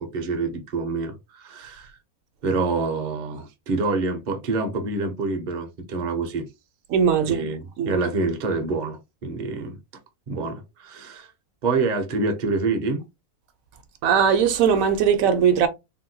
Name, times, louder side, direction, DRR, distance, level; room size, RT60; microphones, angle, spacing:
voice 1, 0.0-1.9 2.4-6.5 7.3-9.8 10.3-11.3 11.6-13.0, right 3 dB, 45° right, 0.6 m, -26 dB
voice 2, 6.9-7.4 7.8-8.0 14.0-15.7, right 7 dB, 75° right, 0.9 m, -19 dB
3.5 x 2.2 x 2.6 m
omnidirectional pair, 1.5 m